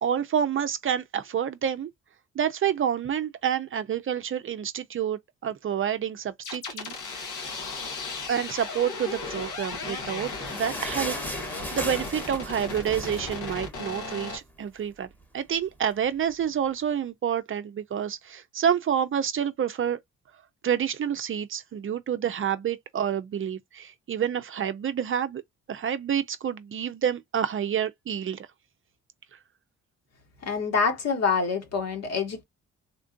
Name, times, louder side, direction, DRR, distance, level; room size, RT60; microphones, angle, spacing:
voice 1, 0.0-1.9 2.4-7.0 8.3-11.2 11.7-15.1 15.3-20.0 20.6-25.4 25.7-28.5, right 8 dB, 45° right, 0.5 m, -28 dB
sound 1, 6.4-14.4, left 3 dB, 80° left, 1.8 m, -36 dB
sound 2, 9.7-14.5 14.8-14.9 15.2-15.4 16.1-16.2, equal, 5° left, 1.2 m, -37 dB
voice 2, 30.4-32.4, left 5 dB, 60° left, 1.6 m, -26 dB
3.7 x 2.4 x 2.5 m
cardioid pair, 90°, 30 cm